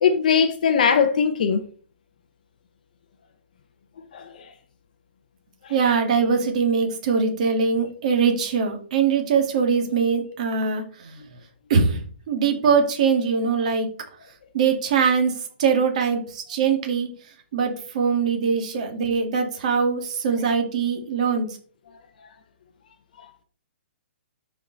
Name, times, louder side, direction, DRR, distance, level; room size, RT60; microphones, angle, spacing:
voice 1, 0.0-1.6 4.1-4.3, left 6 dB, 45° left, 0.8 m, -20 dB
voice 2, 5.7-11.2 11.7-12.0 12.3-13.9 14.5-17.1 17.5-21.5, right 5 dB, 35° right, 1.9 m, -22 dB
12.5 x 4.8 x 3.9 m
hypercardioid pair, 175°, 6 cm